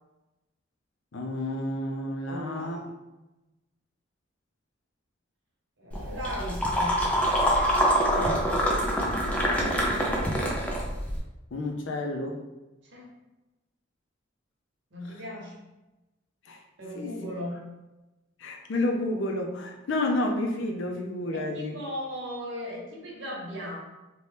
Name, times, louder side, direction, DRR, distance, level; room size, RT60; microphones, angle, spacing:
voice 1, 1.1-2.8 8.1-8.5 11.5-12.4 15.1-15.2 16.5-16.6 17.0-17.2 18.4-21.8, left 1 dB, 70° left, 2 dB, 0.5 m, -30 dB
voice 2, 2.3-2.9 5.8-7.0 9.0-9.8 12.9-13.1 14.9-15.5 16.8-17.6 21.3-23.8, equal, 65° right, -3 dB, 0.9 m, -37 dB
sound 1, 5.9-11.2, equal, 5° left, 0.3 m, -25 dB
2.7 x 2.2 x 3.2 m, 1.0 s
head